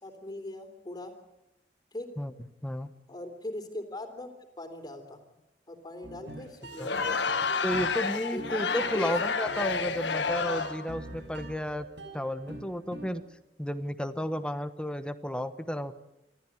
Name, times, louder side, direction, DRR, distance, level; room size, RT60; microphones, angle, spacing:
voice 1, 0.0-1.1 1.9-2.1 3.1-5.2 5.7-7.5 8.3-8.4 8.8-9.1, left 1 dB, 25° left, 6 dB, 3.5 m, -40 dB
sound 1, 6.0-13.3, right 2 dB, 80° right, 5.9 m, -45 dB
Crowd, 6.7-10.9, left 5 dB, 85° left, 1.7 m, -30 dB
voice 2, 7.6-11.9 12.1-13.2 13.6-16.0, equal, 5° left, 10 dB, 1.1 m, -32 dB
27.0 x 14.0 x 9.7 m, 0.91 s
head